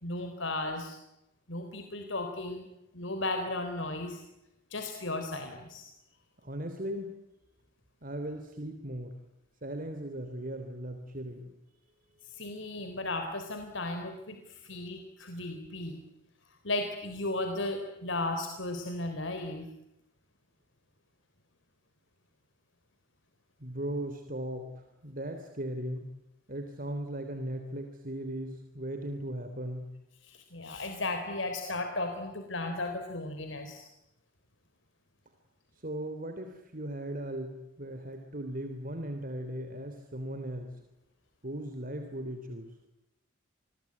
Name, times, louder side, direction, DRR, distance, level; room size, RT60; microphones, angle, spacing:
voice 1, 0.0-1.0 1.5-2.7 2.9-4.2 4.7-5.9 12.3-16.0 16.6-19.7 30.2-33.9, left 2 dB, 75° left, 6 dB, 3.8 m, -35 dB
voice 2, 6.4-7.1 8.0-9.2 9.6-11.5 23.6-26.1 26.5-29.9 35.8-40.8 41.4-42.7, right 1 dB, 45° right, 6 dB, 3.2 m, -38 dB
28.0 x 22.5 x 9.6 m, 0.92 s
head